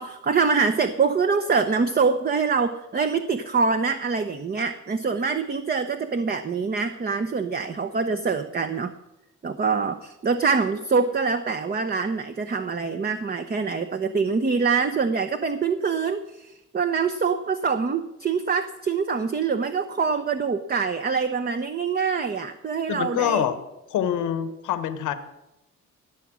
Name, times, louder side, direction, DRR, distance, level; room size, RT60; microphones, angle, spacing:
voice 1, 0.0-8.9 9.4-23.5, right 5 dB, 30° right, 8 dB, 0.8 m, -25 dB
voice 2, 22.9-23.5 23.9-25.1, left 10 dB, 85° left, 11 dB, 1.2 m, -25 dB
18.0 x 7.3 x 6.3 m, 0.93 s
cardioid pair, 90°, 30 cm